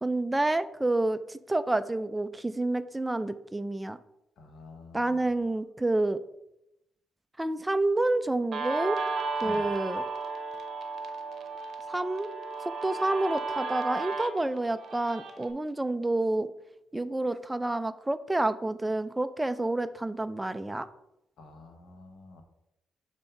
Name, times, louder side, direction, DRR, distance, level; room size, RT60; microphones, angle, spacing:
voice 1, 0.0-4.0 4.9-6.2 7.4-9.0 9.4-10.0 11.9-12.3 12.8-16.5 16.9-20.9, right 2 dB, 10° right, 12 dB, 0.3 m, -29 dB
voice 2, 4.4-5.3 9.4-9.7 21.4-22.4, left 3 dB, 65° left, 5 dB, 0.9 m, -48 dB
Guitar, 8.5-15.5, right 3 dB, 55° right, 0.8 m, -34 dB
6.8 x 2.7 x 5.7 m, 0.86 s
cardioid pair, 115°, 0 cm